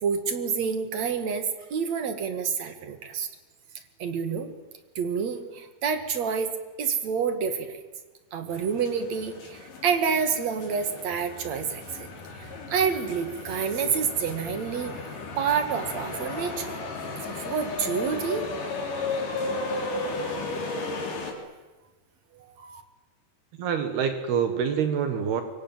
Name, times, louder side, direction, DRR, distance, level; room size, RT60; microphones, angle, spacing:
voice 1, 0.0-3.3 4.0-4.5 5.0-6.5 6.8-7.8 8.3-12.1 12.3-14.9 15.4-16.8 17.2-18.5 22.3-22.8, right 6 dB, 50° right, 8 dB, 2.7 m, -28 dB
sound 1, 8.5-21.3, left 3 dB, 50° left, 5.0 m, -34 dB
voice 2, 23.6-25.4, right 7 dB, 70° right, 7 dB, 3.5 m, -26 dB
25.0 x 23.5 x 9.1 m, 1.2 s
omnidirectional pair, 4.9 m